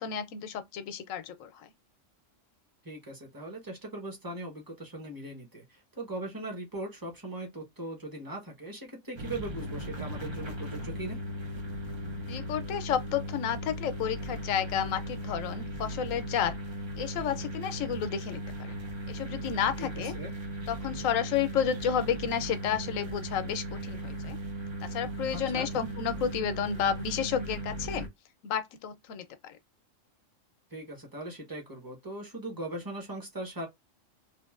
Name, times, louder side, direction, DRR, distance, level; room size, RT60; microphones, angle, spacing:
voice 1, 0.0-1.5 12.3-16.5 17.0-18.7 19.1-20.1 20.7-24.4 24.8-28.1 28.4-29.6, left 8 dB, 85° left, 1.0 m, -31 dB
voice 2, 2.8-11.2 19.8-20.3 25.3-25.7 30.7-33.7, right 1 dB, 20° right, 1.0 m, -39 dB
sound 1, 9.2-28.1, right 1 dB, 40° right, 0.4 m, -37 dB
3.0 x 2.5 x 2.3 m
omnidirectional pair, 1.3 m